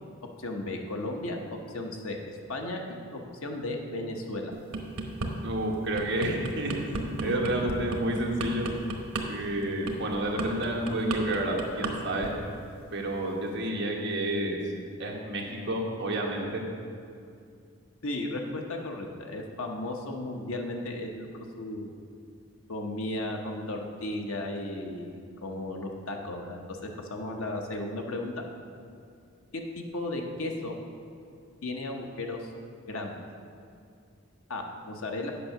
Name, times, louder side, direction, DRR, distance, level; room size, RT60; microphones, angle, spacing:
voice 1, 0.4-4.6 18.0-21.9 22.7-28.3 29.5-30.8 31.6-32.5 32.9-33.1 34.5-35.3, left 2 dB, 90° left, 2 dB, 1.0 m, -35 dB
sound 1, 4.5-5.3 5.7-11.9 12.2-12.5, right 3 dB, 90° right, 0.9 m, -33 dB
voice 2, 5.4-6.7 7.0-8.7 9.3-12.3 12.9-14.6 15.0-16.6, right 1 dB, 55° right, -1 dB, 1.2 m, -30 dB
8.5 x 5.4 x 5.9 m, 2.4 s
head